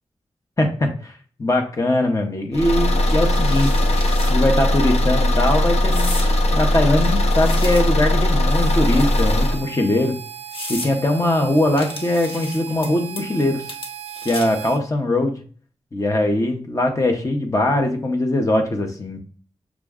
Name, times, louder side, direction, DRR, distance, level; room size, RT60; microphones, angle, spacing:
voice 1, 0.6-3.8 4.3-6.2 6.5-10.1 10.7-13.7 14.2-15.4 15.9-19.2, left 1 dB, 30° left, 3 dB, 0.7 m, -21 dB
Car / Engine, 2.5-9.6, left 1 dB, 75° left, 0.6 m, -19 dB
sound 1, 3.1-4.4 4.8-5.0 5.9-6.3 6.9-8.1 8.9-9.6 10.1-10.2 10.5-10.9 11.8-12.9 13.2-13.4 13.7-14.6, left 2 dB, 55° left, 1.0 m, -34 dB
Harmonica, 8.5-14.8, right 9 dB, 75° right, 0.4 m, -37 dB
6.1 x 2.2 x 3.5 m, 0.43 s
wide cardioid pair, 120°, 11 cm